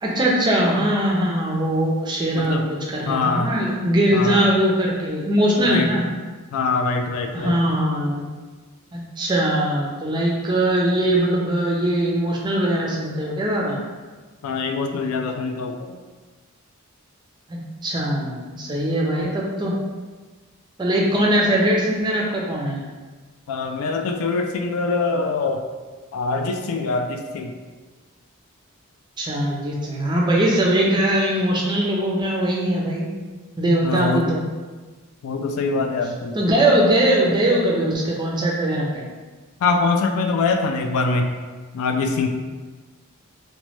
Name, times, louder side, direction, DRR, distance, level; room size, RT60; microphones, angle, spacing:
voice 1, 0.0-6.1 7.3-8.3 8.9-13.8 17.5-19.7 20.8-22.8 29.2-33.1 33.6-34.4 36.3-39.0, right 1 dB, 20° right, -2 dB, 0.4 m, -21 dB
voice 2, 3.0-3.5 4.1-4.5 5.6-5.9 6.5-7.6 14.4-16.0 23.5-25.6 26.1-27.6 33.8-34.3 35.2-36.4 39.6-41.3 41.7-42.3, left 4 dB, 70° left, 5 dB, 0.3 m, -23 dB
3.0 x 2.2 x 3.0 m, 1.4 s
head